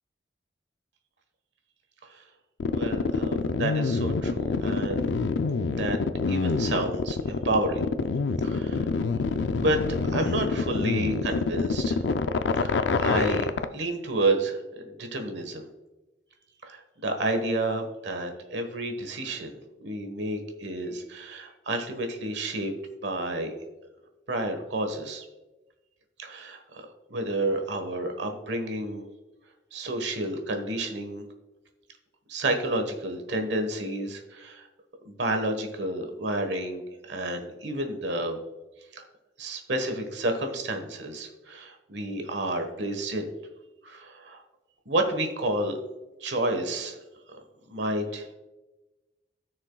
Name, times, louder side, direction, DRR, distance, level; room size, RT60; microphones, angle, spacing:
sound 1, 2.6-13.7, left 4 dB, 75° left, 0.5 m, -26 dB
voice 1, 2.7-5.1 5.6-6.0 6.3-7.9 8.4-8.9 9.6-9.8 10.1-12.0 12.6-14.6 14.9-15.7 16.6-22.7 23.0-23.5 24.3-25.2 26.2-29.0 29.7-31.3 32.3-34.7 35.0-38.4 38.9-39.0 39.4-43.3 43.8-44.4 44.9-45.8 46.2-47.0 47.7-48.4, right 1 dB, 75° right, 5 dB, 1.3 m, -30 dB
15.5 x 6.4 x 2.3 m, 1.1 s
head